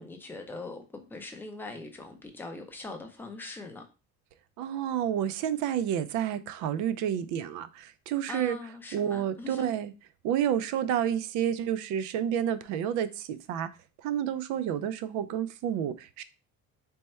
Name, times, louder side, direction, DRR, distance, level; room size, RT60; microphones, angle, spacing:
voice 1, 0.0-3.9 8.3-9.7, left 3 dB, 5° left, 0.4 m, -41 dB
voice 2, 4.6-8.6 8.9-9.9 10.2-13.7 14.0-16.2, right 10 dB, 75° right, 0.5 m, -30 dB
3.4 x 2.1 x 4.2 m
cardioid pair, 170°, 30 cm